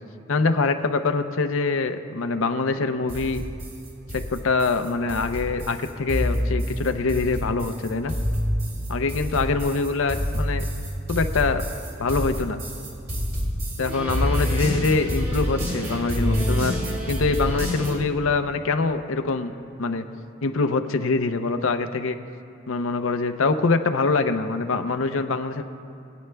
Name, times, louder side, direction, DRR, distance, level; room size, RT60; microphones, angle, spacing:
voice 1, 0.3-3.4 4.1-8.1 8.9-10.6 11.1-11.6 12.0-12.6 13.8-19.5 19.8-20.1 20.4-22.2 22.7-25.6, left 3 dB, 80° left, 7 dB, 0.6 m, -24 dB
sound 1, 3.1-18.0, equal, 50° right, 2.7 m, -27 dB
21.0 x 9.3 x 2.2 m, 2.8 s
head